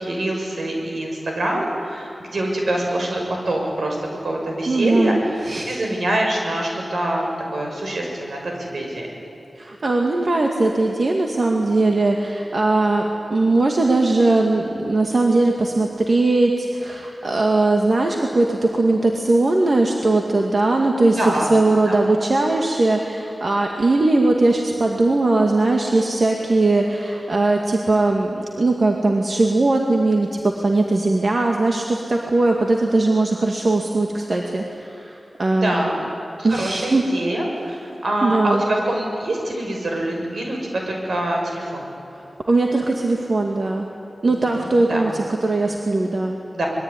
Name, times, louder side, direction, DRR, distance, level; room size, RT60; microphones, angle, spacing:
voice 1, 0.0-4.0 4.2-9.1 21.1-21.5 21.9-22.0 35.5-36.1 36.4-37.8 38.0-41.9 44.5-45.1 46.5-46.7, right 1 dB, 80° right, 0 dB, 6.6 m, -25 dB
voice 2, 4.7-5.8 9.6-35.9 36.4-37.0 38.2-38.6 42.5-43.9 44.2-46.4, right 2 dB, 55° right, 1 dB, 2.1 m, -19 dB
26.0 x 21.5 x 9.9 m, 2.9 s
wide cardioid pair, 85°, 0 cm